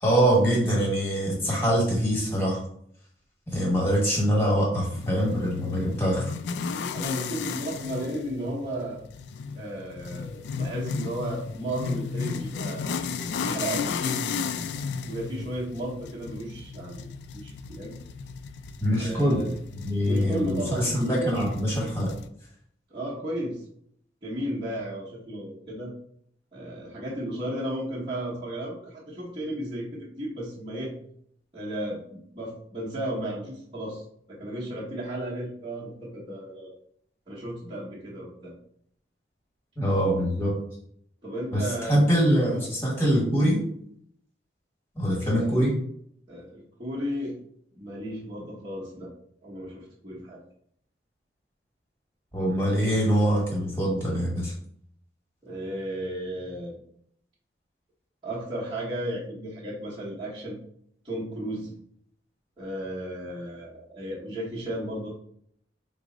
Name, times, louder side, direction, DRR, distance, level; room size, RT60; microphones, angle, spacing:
voice 1, 0.0-2.6 3.5-6.2 18.8-19.4 19.7-22.1 39.8-40.6 41.5-43.6 45.0-45.7 52.3-54.5, equal, 15° left, -3 dB, 1.3 m, -24 dB
sound 1, 5.0-22.3, left 5 dB, 75° left, 0.3 m, -34 dB
voice 2, 6.9-9.0 9.5-12.9 13.2-14.2 15.1-17.0 17.3-18.0 19.0-19.6 20.0-21.2 22.9-23.6 24.2-25.9 26.5-30.9 31.5-34.0 34.3-36.7 37.3-38.5 41.2-42.7 45.2-45.6 46.3-47.4 47.8-49.1 49.4-50.4 55.4-56.8 58.2-60.6 61.0-61.7 62.6-65.1, right 1 dB, 30° right, -10 dB, 0.9 m, -34 dB
4.7 x 2.0 x 3.8 m, 0.67 s
head